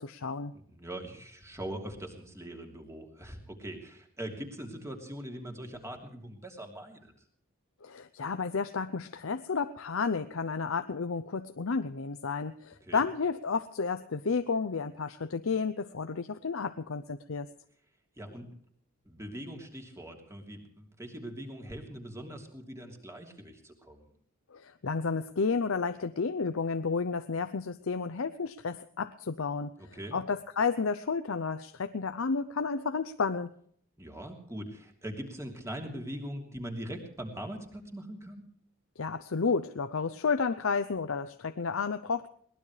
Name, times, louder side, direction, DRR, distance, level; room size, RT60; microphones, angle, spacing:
voice 1, 0.0-0.5 7.8-17.5 24.5-33.5 39.0-42.3, left 5 dB, 75° left, 10 dB, 0.7 m, -31 dB
voice 2, 0.5-7.1 12.8-13.0 18.2-18.5 19.0-24.1 29.8-30.2 34.0-38.4, right 1 dB, 15° right, 3 dB, 3.1 m, -42 dB
22.0 x 19.0 x 3.3 m, 0.63 s
head